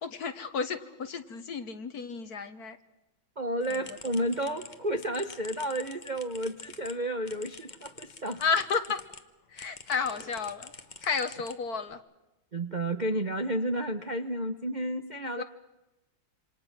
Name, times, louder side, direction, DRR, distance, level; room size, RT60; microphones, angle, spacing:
voice 1, 0.0-2.8 3.7-3.8 8.4-9.0 9.5-10.7 11.0-12.0 15.4-15.5, left 5 dB, 55° left, 10 dB, 1.7 m, -32 dB
voice 2, 3.4-8.4 12.5-15.4, right 1 dB, 35° right, 6 dB, 0.8 m, -31 dB
sound 1, 3.6-9.2 9.6-11.9, left 4 dB, 30° left, 1.0 m, -48 dB
27.5 x 27.0 x 6.0 m, 0.99 s
omnidirectional pair, 2.2 m